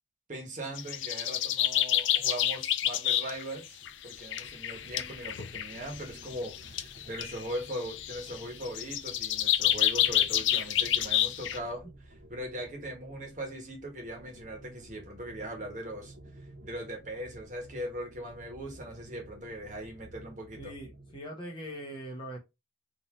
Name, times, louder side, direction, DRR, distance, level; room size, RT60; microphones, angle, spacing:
voice 1, 0.3-20.7, equal, 40° right, 1.3 m, -40 dB
sound 1, 0.8-3.4 3.9-11.6, left 12 dB, 80° left, 0.4 m, -29 dB
sound 2, 3.8-21.2, right 1 dB, 60° right, 0.7 m, -53 dB
voice 2, 20.6-22.4, equal, 25° left, 1.1 m, -41 dB
3.7 x 2.8 x 3.0 m
head